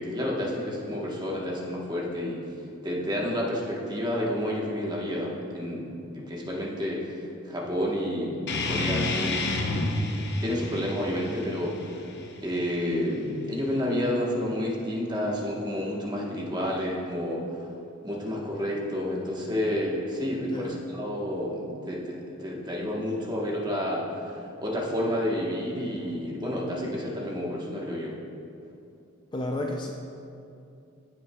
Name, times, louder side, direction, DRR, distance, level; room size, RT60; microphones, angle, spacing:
voice 1, 0.0-2.5 2.8-9.4 10.1-12.1 12.4-17.4 18.0-28.2, left 1 dB, 20° right, -3 dB, 1.1 m, -30 dB
sound 1, 8.5-13.5, left 2 dB, 55° left, 0.7 m, -30 dB
voice 2, 20.4-20.8 29.3-29.9, left 1 dB, 20° left, 1 dB, 0.4 m, -31 dB
15.5 x 5.8 x 2.3 m, 2.6 s
head